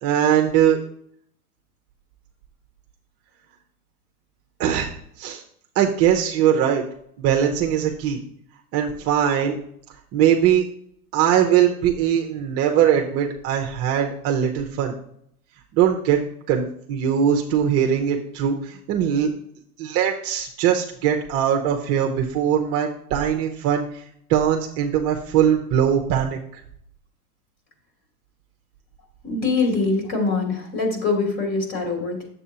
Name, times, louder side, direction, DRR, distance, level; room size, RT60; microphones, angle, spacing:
voice 1, 0.0-0.8 4.6-4.9 5.2-5.4 5.8-6.8 7.2-8.2 8.7-9.6 10.1-10.6 11.1-14.9 15.7-16.2 16.5-19.3 19.8-23.9 24.3-26.4, right 9 dB, 30° right, 2 dB, 0.7 m, -21 dB
voice 2, 29.2-32.3, left 3 dB, 35° left, 0 dB, 3.2 m, -23 dB
9.8 x 7.4 x 2.8 m, 0.68 s
hypercardioid pair, 130°, 47 cm